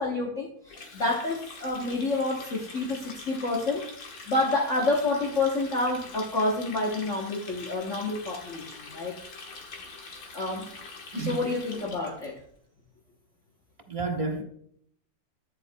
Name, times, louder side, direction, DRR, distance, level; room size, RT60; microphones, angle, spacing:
voice 1, 0.0-9.2 10.3-10.7 11.1-12.4, left 2 dB, 45° left, 1.3 m, -29 dB
Water tap faucet, 0.7-12.3, left 3 dB, 80° left, 2.2 m, -44 dB
voice 2, 11.1-11.4 13.9-14.4, right 3 dB, 20° right, 1.1 m, -30 dB
9.9 x 7.8 x 2.2 m
omnidirectional pair, 1.9 m